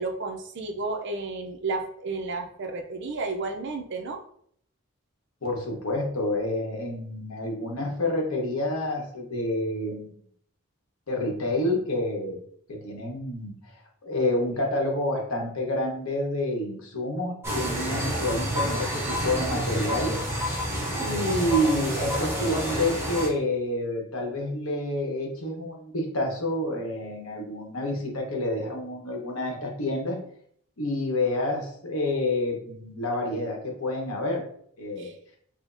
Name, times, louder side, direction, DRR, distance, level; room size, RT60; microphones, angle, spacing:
voice 1, 0.0-4.2 35.0-35.1, right 3 dB, 55° right, 5 dB, 0.5 m, -32 dB
voice 2, 5.4-10.2 11.1-12.4 12.7-13.5 14.0-20.2 20.9-30.2 30.8-34.4 34.8-35.1, left 1 dB, 80° left, 0 dB, 1.0 m, -28 dB
sound 1, 17.4-23.3, equal, 10° right, 0.7 m, -29 dB
5.0 x 2.1 x 2.6 m, 0.63 s
head